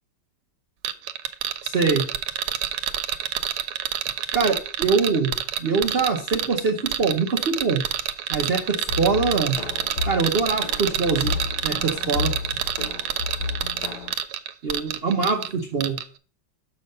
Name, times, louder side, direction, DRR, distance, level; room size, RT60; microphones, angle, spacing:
sound 1, 0.8-15.5 15.8-16.0, right 10 dB, 90° right, 1.5 m, -28 dB
voice 1, 1.6-2.0 4.3-5.3 5.6-7.8 8.3-9.5 10.1-11.3 11.6-12.3 14.6-16.0, right 4 dB, 65° right, 3 dB, 0.5 m, -23 dB
sound 2, 8.9-14.1, left 5 dB, 65° left, 1.2 m, -32 dB
6.6 x 5.6 x 5.4 m, 0.40 s
omnidirectional pair, 2.3 m